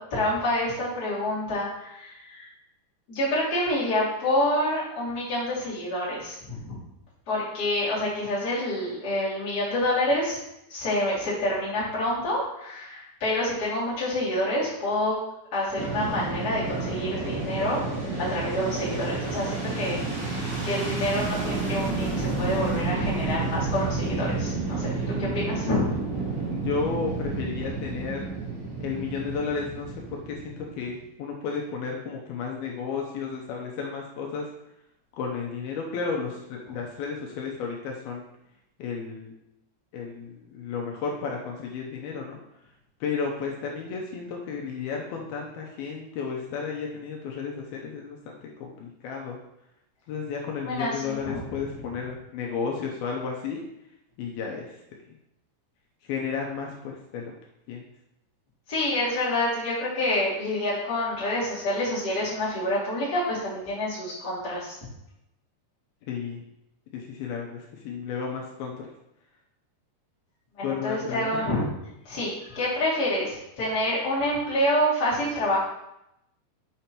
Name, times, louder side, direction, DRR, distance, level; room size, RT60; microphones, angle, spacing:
voice 1, 0.0-2.5 3.1-6.8 7.3-10.4 10.7-15.2 15.5-17.8 18.3-25.9 50.6-51.4 58.7-64.8 70.6-71.7 72.0-75.6, left 1 dB, 30° left, -8 dB, 2.7 m, -27 dB
Fixed-wing aircraft airplane, 15.8-30.9, right 3 dB, 80° right, 4.3 m, -30 dB
voice 2, 26.5-28.3 28.8-34.5 35.2-38.2 38.8-39.3 39.9-42.4 43.0-49.4 50.1-53.6 54.2-54.8 56.0-57.3 57.7-57.9 66.1-66.4 66.9-68.9 70.6-71.5, left 5 dB, 80° left, 0 dB, 2.6 m, -33 dB
6.9 x 6.7 x 3.0 m, 0.83 s
omnidirectional pair, 4.5 m